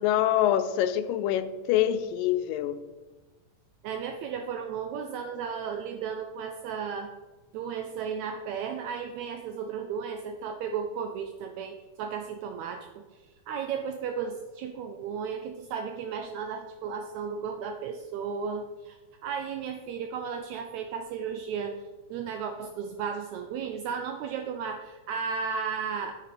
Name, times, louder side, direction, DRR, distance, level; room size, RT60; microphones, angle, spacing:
voice 1, 0.0-2.8, left 11 dB, 90° left, 12 dB, 2.2 m, -25 dB
voice 2, 3.8-7.1 7.5-19.0 19.2-21.8 22.1-26.2, right 6 dB, 80° right, 6 dB, 1.6 m, -34 dB
9.5 x 5.8 x 5.0 m, 1.2 s
omnidirectional pair, 3.8 m